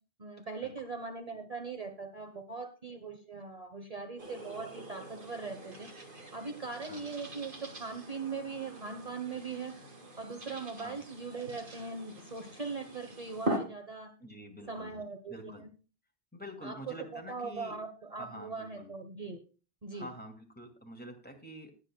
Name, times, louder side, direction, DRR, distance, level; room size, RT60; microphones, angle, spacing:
voice 1, 0.2-5.9 6.3-9.7 10.2-14.1 14.7-15.7 16.6-19.4 19.8-20.1, right 4 dB, 35° right, 5 dB, 1.2 m, -40 dB
sound 1, 4.2-13.6, equal, 55° right, 2.2 m, -42 dB
voice 2, 14.2-15.0 15.3-15.6 16.3-17.8 18.2-18.9 19.9-21.8, equal, 10° left, 3 dB, 2.4 m, -47 dB
19.5 x 8.4 x 2.3 m, 0.34 s
omnidirectional pair, 1.1 m